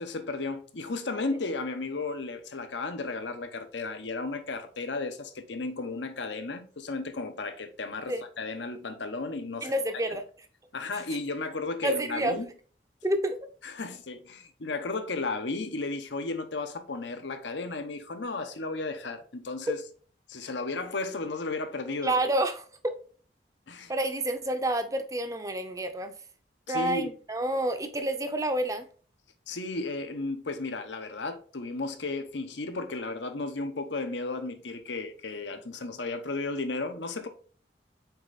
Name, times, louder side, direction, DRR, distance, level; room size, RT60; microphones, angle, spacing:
voice 1, 0.0-9.7 10.1-10.2 10.7-12.5 13.6-19.8 20.3-22.1 23.7-23.9 26.7-27.1 29.5-37.3, left 3 dB, 85° left, 0.9 m, -34 dB
voice 2, 9.6-10.2 11.8-12.3 13.0-13.4 22.0-22.9 23.9-26.1 26.7-28.9, right 1 dB, 20° right, 0.6 m, -29 dB
5.8 x 4.5 x 4.1 m
head